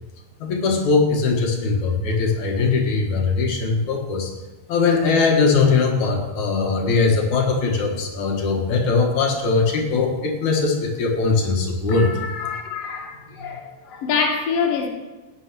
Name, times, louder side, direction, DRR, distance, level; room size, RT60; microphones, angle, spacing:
voice 1, 0.4-4.3 4.7-12.1, left 4 dB, 80° left, 3.1 m, -20 dB
voice 2, 11.9-14.9, left 5 dB, 60° left, 2.6 m, -26 dB
15.5 x 9.4 x 6.1 m
omnidirectional pair, 3.4 m